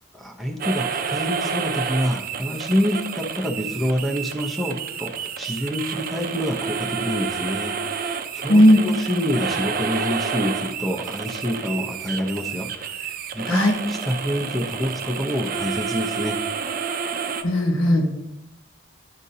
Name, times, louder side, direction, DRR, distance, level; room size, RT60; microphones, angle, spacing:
voice 1, 0.1-13.6 13.9-16.4, equal, ahead, 0 dB, 0.8 m, -27 dB
sound 1, 0.6-17.4, right 6 dB, 45° right, 0.5 m, -29 dB
voice 2, 8.5-8.8 13.5-13.7 17.4-18.1, equal, 85° left, 2 dB, 1.4 m, -16 dB
11.0 x 5.3 x 2.8 m, 0.91 s
head